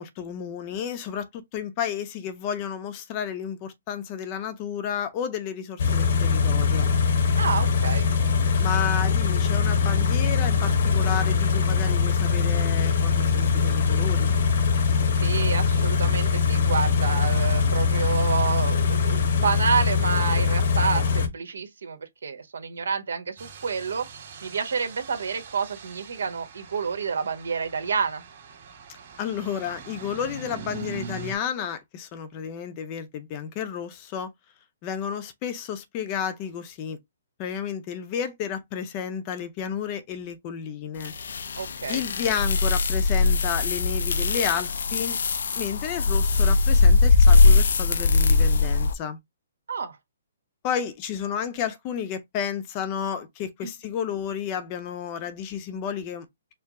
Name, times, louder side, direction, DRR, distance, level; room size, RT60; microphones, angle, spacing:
voice 1, 0.0-6.9 8.6-14.3 29.2-34.3 34.8-37.0 37.4-41.1 41.9-45.2 45.6-49.2 50.6-56.3, left 8 dB, 25° left, 0.6 m, -31 dB
Car / Idling, 5.8-21.3, left 5 dB, 55° left, 0.9 m, -22 dB
voice 2, 7.4-8.1 15.2-24.1 24.4-28.2 41.6-42.0 49.7-50.0 53.6-53.7, right 5 dB, 85° right, 1.1 m, -29 dB
sound 1, 23.4-31.4, right 5 dB, 40° right, 1.7 m, -42 dB
sound 2, 41.0-48.9, left 4 dB, 75° left, 0.5 m, -20 dB
4.5 x 2.0 x 3.6 m
hypercardioid pair, 160°, 0 cm